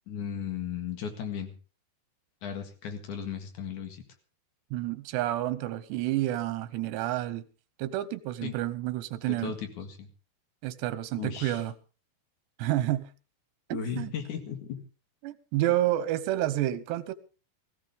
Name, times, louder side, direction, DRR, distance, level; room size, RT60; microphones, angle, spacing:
voice 1, 0.1-1.5 2.4-4.0 8.4-8.5 9.3-10.1 11.2-11.6 13.7-14.8, left 7 dB, 55° left, 2.9 m, -36 dB
voice 2, 4.7-7.5 7.8-9.5 10.6-11.7 12.6-13.1 13.7-14.1 15.2-17.1, right 14 dB, 85° right, 3.1 m, -29 dB
20.5 x 15.5 x 3.5 m
omnidirectional pair, 4.9 m